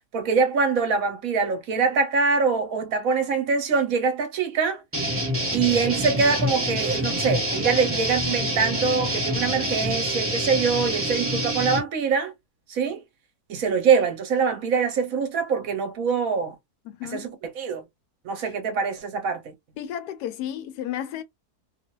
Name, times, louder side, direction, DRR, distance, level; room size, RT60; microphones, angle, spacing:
voice 1, 0.1-4.8 5.5-12.3 12.7-13.0 13.5-16.5 17.1-17.8 18.2-19.5, right 5 dB, 65° right, 1.2 m, -24 dB
sound 1, 4.9-11.8, equal, 10° right, 0.9 m, -26 dB
voice 2, 16.9-17.3 19.8-21.2, left 10 dB, 90° left, 1.2 m, -33 dB
2.8 x 2.4 x 2.9 m
omnidirectional pair, 1.7 m